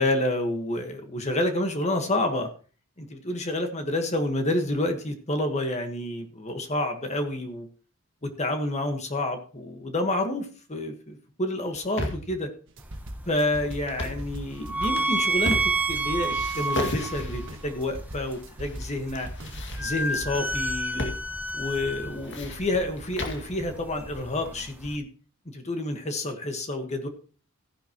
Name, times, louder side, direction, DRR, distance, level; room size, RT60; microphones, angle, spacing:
voice 1, 0.0-2.5 3.0-7.7 8.2-12.5 13.3-19.3 19.8-21.1 21.5-25.1 25.5-27.1, left 1 dB, 35° left, 5 dB, 1.5 m, -29 dB
sound 1, 11.6-12.4 13.8-14.3 14.8-16.0 16.3-17.6 18.3-18.9 19.1-20.2 21.0-21.2 21.5-21.6 22.0-23.5, left 1 dB, 60° left, 2.1 m, -34 dB
sound 2, 12.7-20.7, right 1 dB, 65° right, 1.4 m, -39 dB
sound 3, 12.8-25.0, right 2 dB, 10° right, 0.8 m, -31 dB
14.5 x 10.5 x 3.0 m, 0.37 s
head